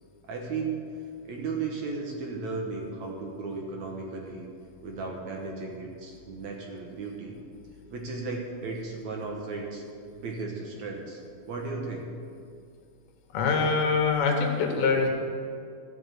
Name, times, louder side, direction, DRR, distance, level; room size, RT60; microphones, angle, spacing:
voice 1, 0.3-0.8 1.2-4.5 4.8-7.4 7.9-9.8 10.1-11.2 11.5-12.1, right 4 dB, 60° right, 0 dB, 2.2 m, -35 dB
voice 2, 13.3-15.1, left 4 dB, 85° left, 2 dB, 3.3 m, -24 dB
14.0 x 6.1 x 8.3 m, 2.3 s
omnidirectional pair, 4.2 m